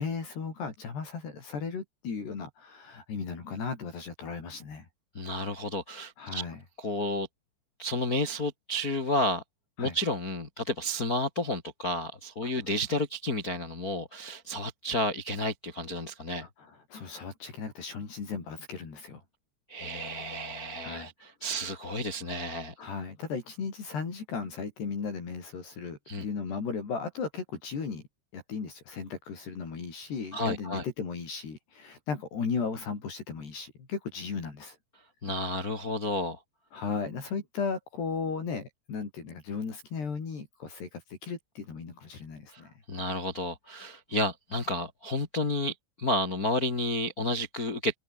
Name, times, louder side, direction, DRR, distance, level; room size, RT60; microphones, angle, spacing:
voice 1, 0.0-4.9 6.2-6.6 9.8-10.0 12.4-12.5 16.4-19.2 20.8-21.1 21.5-21.6 22.8-28.0 28.3-34.8 36.7-42.7, left 5 dB, 60° left, 7.4 m, -36 dB
voice 2, 5.1-6.4 6.8-7.3 7.8-9.4 9.8-16.5 19.7-22.7 26.1-26.2 30.3-30.8 35.2-36.4 42.5-42.6 42.9-47.9, left 1 dB, 30° left, 1.7 m, -31 dB
omnidirectional pair, 5.4 m